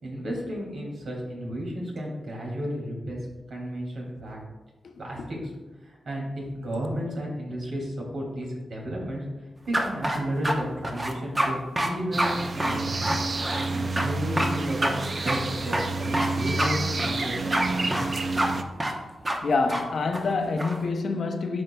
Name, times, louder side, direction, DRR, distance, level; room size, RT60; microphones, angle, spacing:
voice 1, 0.0-3.2 3.5-4.4 5.0-5.5 5.8-13.2 13.7-18.0, equal, 75° right, 2.5 m, -33 dB
sound 1, 9.7-10.5 10.8-11.5 11.8-11.9 12.2-12.3 12.6-13.7 14.0-14.1 14.4-14.5 14.8-14.9 15.3-15.4 15.7-16.3 16.6-16.7 17.0-17.7 17.9-18.1 18.4-18.5 18.8-19.0 19.3-19.4 19.7-19.8 20.1-20.8, right 1 dB, 25° right, 0.9 m, -26 dB
sound 2, 12.1-18.6, right 3 dB, 45° right, 0.5 m, -29 dB
voice 2, 19.4-21.6, left 3 dB, 65° left, 0.6 m, -26 dB
12.0 x 5.4 x 2.3 m
wide cardioid pair, 115°, 0 cm